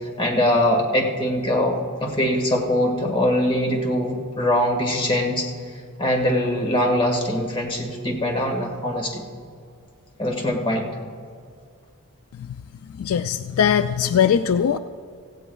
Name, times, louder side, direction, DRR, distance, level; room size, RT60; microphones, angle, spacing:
voice 1, 0.2-5.5 6.0-9.2 10.2-10.9, left 1 dB, 25° left, 1 dB, 1.7 m, -22 dB
voice 2, 13.0-14.8, left 8 dB, 70° left, 11 dB, 0.3 m, -20 dB
17.0 x 15.5 x 2.3 m, 2.2 s
head